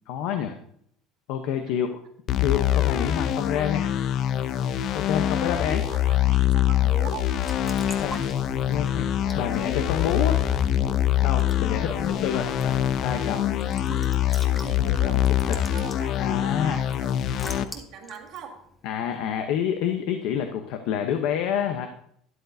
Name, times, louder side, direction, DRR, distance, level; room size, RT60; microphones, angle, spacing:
voice 1, 0.1-0.6 1.3-2.0 2.4-3.9 4.6-5.8 8.0-8.2 8.7-10.4 11.2-13.9 14.8-15.2 15.5-15.6 16.2-16.8 18.8-21.9, left 8 dB, 60° left, 6 dB, 0.8 m, -28 dB
sound 1, 2.3-17.6, left 11 dB, 40° left, 0.5 m, -24 dB
voice 2, 5.6-7.3 11.8-12.2 13.9-14.2 14.6-15.2 15.5-18.6, right 7 dB, 50° right, 0 dB, 1.9 m, -42 dB
Raindrop / Drip / Trickle dribble, 7.2-19.6, left 1 dB, 10° left, 1.1 m, -46 dB
sound 2, 7.7-13.0, equal, 20° right, 1.0 m, -40 dB
12.5 x 10.5 x 2.7 m, 0.69 s
cardioid pair, 160°, 0 cm